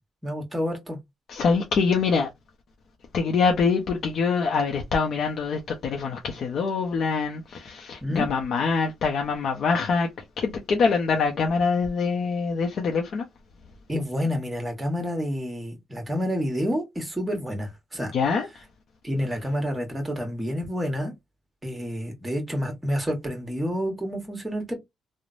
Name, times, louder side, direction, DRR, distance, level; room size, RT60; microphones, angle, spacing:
voice 1, 0.2-1.0 8.0-8.3 13.9-18.1 19.0-21.1 21.6-24.7, equal, 15° right, 1.2 m, -29 dB
voice 2, 1.3-2.3 3.1-10.1 10.4-13.2 18.1-18.5, left 5 dB, 60° left, 0.5 m, -24 dB
3.1 x 2.0 x 2.5 m
cardioid pair, 90°, 0 cm